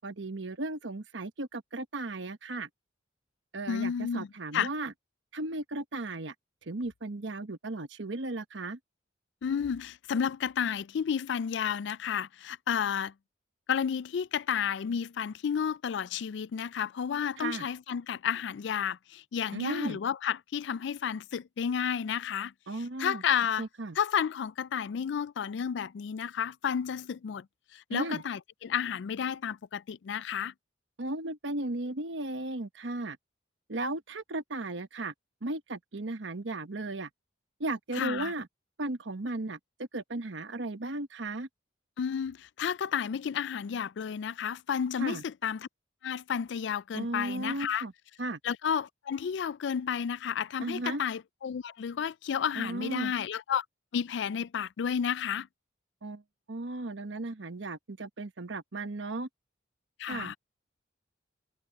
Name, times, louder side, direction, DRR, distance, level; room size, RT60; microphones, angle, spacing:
voice 1, 0.0-2.7 3.5-4.9 5.3-6.3 6.6-8.8 17.4-17.7 19.5-20.0 22.7-23.2 23.6-24.0 27.9-28.2 31.0-33.2 33.7-35.1 35.4-37.1 37.6-38.5 38.8-41.5 45.0-45.2 46.9-47.9 48.2-48.4 50.6-51.0 52.6-53.1 56.0-56.2 56.5-59.3 60.1-60.4, right 2 dB, 75° right, 1.1 m, -35 dB
voice 2, 3.7-4.3 4.5-4.7 9.4-13.1 13.7-22.5 23.0-23.7 24.0-27.5 27.7-30.5 38.0-38.3 42.0-45.7 46.0-47.8 48.4-53.6 53.9-55.5 60.0-60.4, left 7 dB, 70° left, 0.3 m, -31 dB
head